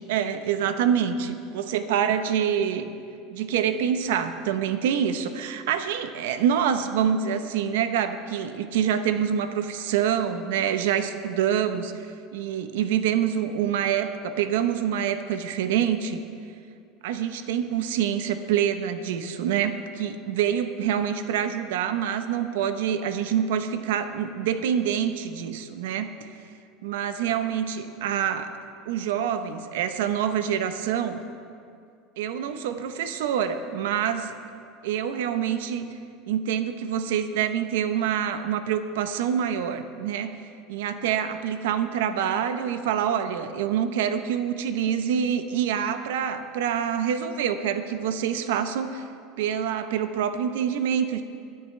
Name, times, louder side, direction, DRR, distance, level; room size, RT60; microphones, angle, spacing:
voice 1, 0.1-1.2 1.5-2.9 3.3-16.2 17.0-26.1 26.8-28.5 28.9-31.2 32.2-34.3 34.8-35.9 36.3-40.3 40.7-49.0 49.4-51.2, right 8 dB, 85° right, 9 dB, 0.8 m, -26 dB
20.5 x 10.0 x 3.3 m, 2.4 s
supercardioid pair, 165°, 0 cm